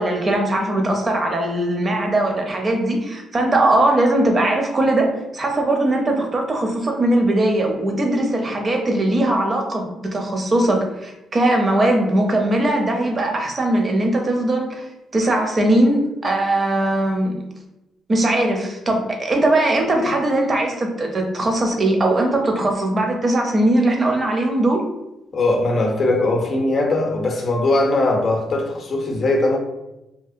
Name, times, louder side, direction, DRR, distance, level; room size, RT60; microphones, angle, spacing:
voice 1, 0.0-17.4 18.1-24.9, right 1 dB, 35° right, 2 dB, 0.5 m, -20 dB
voice 2, 25.3-29.6, left 2 dB, 50° left, 2 dB, 0.5 m, -20 dB
2.8 x 2.0 x 2.4 m, 0.93 s
cardioid pair, 90°, 0 cm